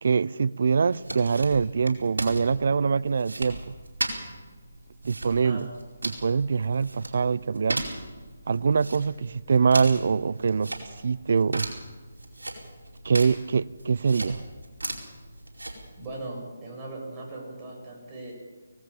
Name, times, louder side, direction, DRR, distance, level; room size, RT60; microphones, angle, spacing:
voice 1, 0.0-3.7 5.0-5.7 6.0-7.8 8.5-10.7 11.0-11.7 13.0-14.4, right 5 dB, 55° right, 0.5 m, -24 dB
sound 1, 0.9-16.1, right 2 dB, 80° right, 4.9 m, -37 dB
voice 2, 16.0-18.3, right 2 dB, 20° right, 7.6 m, -38 dB
24.0 x 18.0 x 7.2 m
figure-of-eight pair, 150°, 0 cm